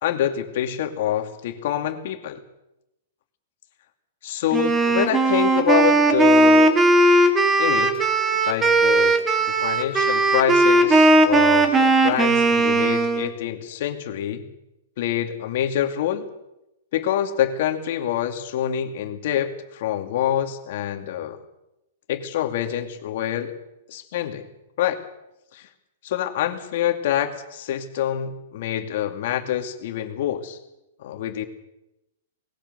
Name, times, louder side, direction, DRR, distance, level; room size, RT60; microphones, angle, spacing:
voice 1, 0.0-2.4 4.2-6.8 7.6-8.0 8.5-14.5 15.0-16.3 16.9-21.4 22.1-23.5 23.9-24.5 24.8-25.0 25.5-25.7 26.0-30.6 31.0-31.5, left 11 dB, 55° left, 7 dB, 2.4 m, -26 dB
Wind instrument woodwind instrument, 4.5-13.3, right 2 dB, 15° right, 1.9 m, -17 dB
20.0 x 18.5 x 8.1 m, 0.90 s
hypercardioid pair, 160°, 0 cm